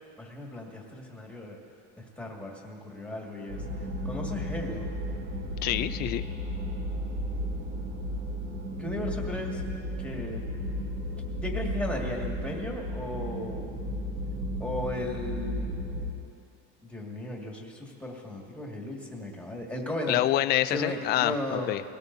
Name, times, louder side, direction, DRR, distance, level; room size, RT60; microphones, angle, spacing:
voice 1, 0.2-1.6 2.0-3.6 4.0-4.9 8.8-9.6 10.0-10.4 11.4-13.7 14.6-15.7 16.8-20.2 20.7-21.7, left 1 dB, 5° left, -1 dB, 1.9 m, -35 dB
sound 1, 3.5-16.1, equal, 65° right, 2.8 m, -34 dB
voice 2, 5.6-6.2 20.1-21.8, left 14 dB, 35° left, 11 dB, 0.4 m, -27 dB
21.5 x 17.0 x 2.7 m, 2.4 s
supercardioid pair, 135°, 29 cm